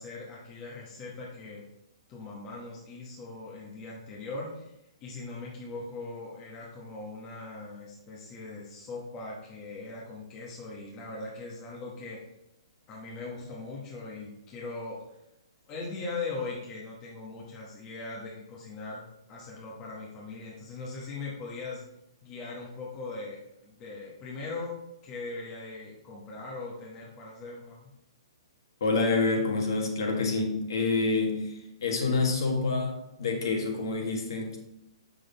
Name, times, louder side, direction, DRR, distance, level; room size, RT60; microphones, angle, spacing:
voice 1, 0.0-1.6 2.1-4.7 5.0-12.2 12.9-15.0 15.7-21.8 22.2-27.9, left 3 dB, 15° left, -4 dB, 1.1 m, -40 dB
voice 2, 28.8-34.6, left 3 dB, 50° left, 2 dB, 1.6 m, -27 dB
7.3 x 6.2 x 4.0 m, 0.86 s
hypercardioid pair, 180°, 3 cm